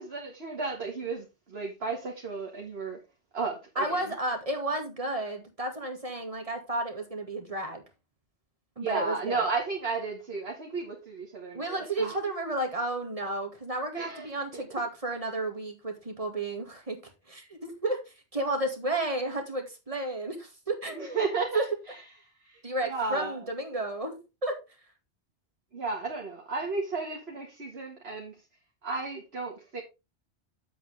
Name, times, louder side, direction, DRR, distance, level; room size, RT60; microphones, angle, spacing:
voice 1, 0.0-3.0 3.3-4.1 8.8-12.2 13.9-14.3 14.5-14.6 20.9-22.0 22.4-23.3 25.7-28.3 28.8-29.8, right 4 dB, 65° right, 2.1 m, -34 dB
voice 2, 3.8-7.8 8.8-9.4 11.5-17.0 17.3-18.0 18.3-21.2 21.5-21.6 22.6-24.6, right 2 dB, 30° right, 2.2 m, -32 dB
8.9 x 7.9 x 3.5 m
omnidirectional pair, 1.2 m